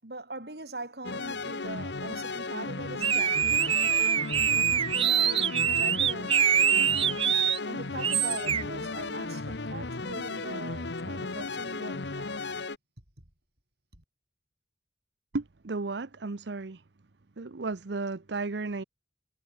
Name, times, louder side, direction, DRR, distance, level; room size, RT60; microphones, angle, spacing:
voice 1, 0.0-3.8 4.9-6.4 6.7-7.2 7.6-12.3 13.9-14.0, right 2 dB, 65° right, 6.6 m, -41 dB
sound 1, 1.0-12.8, left 3 dB, 85° left, 1.4 m, -35 dB
sound 2, 3.0-7.6 8.0-8.6, right 8 dB, 30° right, 0.3 m, -24 dB
voice 2, 15.3-16.8 17.4-18.8, right 3 dB, 80° right, 0.8 m, -34 dB
head